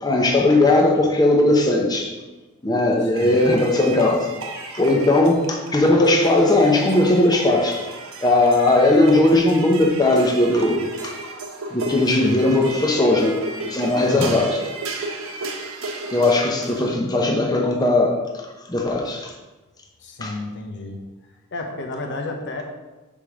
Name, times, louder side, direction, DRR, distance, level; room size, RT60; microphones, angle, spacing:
voice 1, 0.0-2.2 2.6-7.9 8.2-11.1 11.7-14.6 16.1-19.3 20.2-20.3, left 2 dB, 20° left, 1 dB, 0.8 m, -18 dB
voice 2, 3.0-3.4 12.2-12.4 14.1-14.4 20.0-21.0 21.5-22.6, left 2 dB, 55° left, 3 dB, 0.9 m, -32 dB
sound 1, 3.2-17.0, right 2 dB, 70° right, 1.1 m, -34 dB
5.2 x 5.1 x 6.2 m, 1.1 s
head